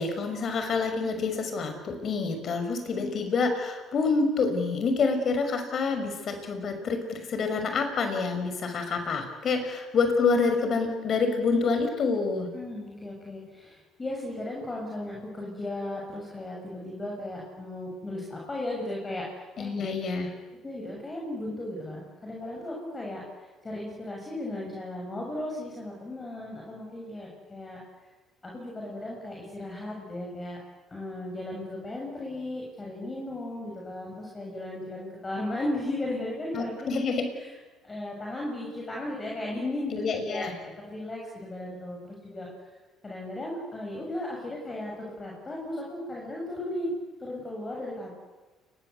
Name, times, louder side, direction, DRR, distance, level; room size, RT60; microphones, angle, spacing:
voice 1, 0.0-12.5 19.6-20.3 36.5-37.3 39.9-40.5, left 4 dB, 50° left, 7 dB, 6.1 m, -27 dB
voice 2, 12.5-19.8 20.6-27.8 28.4-30.6 30.9-36.9 37.4-37.5 37.8-40.0 40.3-42.5 43.0-46.9 47.2-48.1, left 1 dB, 20° left, -2 dB, 7.0 m, -36 dB
29.5 x 21.5 x 8.2 m, 1.2 s
cardioid pair, 100°, 0 cm